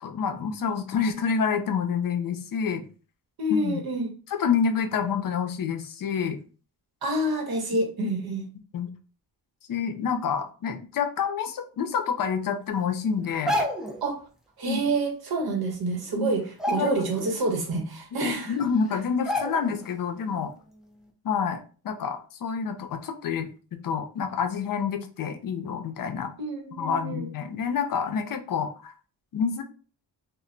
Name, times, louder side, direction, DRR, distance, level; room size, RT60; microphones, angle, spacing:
voice 1, 0.0-2.8 3.5-3.8 4.3-6.4 8.7-8.9 9.7-13.6 14.7-14.8 16.1-16.3 16.7-16.9 18.1-20.5 21.2-23.5 23.8-26.3 26.8-28.9 29.3-29.6, left 6 dB, 55° left, 5 dB, 0.6 m, -28 dB
voice 2, 3.4-4.1 7.0-8.5 14.0-14.2 14.6-18.6 26.4-27.3, right 2 dB, 60° right, 2 dB, 0.9 m, -28 dB
sound 1, 13.3-14.0 15.5-15.6 15.9-16.1 16.5-17.3 17.7-17.8 18.6-18.7 19.3-19.9 20.3-20.4, left 1 dB, ahead, 0.3 m, -29 dB
2.2 x 2.1 x 3.7 m, 0.38 s
cardioid pair, 120°, 41 cm